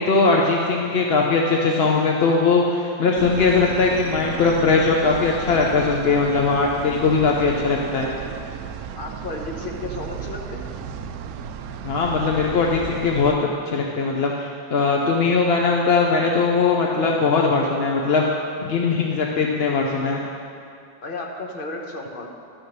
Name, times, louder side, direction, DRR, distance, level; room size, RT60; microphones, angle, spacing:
voice 1, 0.0-8.1 11.8-13.3 13.7-18.2 18.6-20.2, left 4 dB, 55° left, -1 dB, 0.7 m, -20 dB
sound 1, 3.2-13.4, right 8 dB, 70° right, 0.9 m, -34 dB
voice 2, 9.0-10.6 21.0-22.3, left 2 dB, 35° left, 0 dB, 1.1 m, -33 dB
12.0 x 6.2 x 6.6 m, 2.4 s
omnidirectional pair, 1.8 m